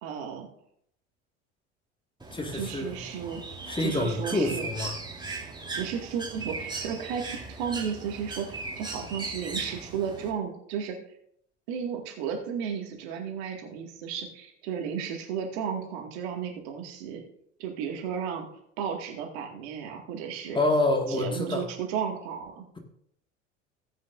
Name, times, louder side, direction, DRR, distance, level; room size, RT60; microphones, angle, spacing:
voice 1, 0.0-0.5 2.5-3.4 3.8-4.7 5.8-11.0 11.7-17.2 17.6-18.5 18.8-20.6 21.1-22.7, right 7 dB, 60° right, 2 dB, 2.1 m, -34 dB
Bird, 2.2-10.3, right 3 dB, 10° right, 3.7 m, -38 dB
voice 2, 2.3-3.0 3.7-5.0 20.5-21.6, left 2 dB, 15° left, 3 dB, 2.0 m, -27 dB
16.5 x 9.6 x 2.6 m, 0.69 s
figure-of-eight pair, 70°, 36 cm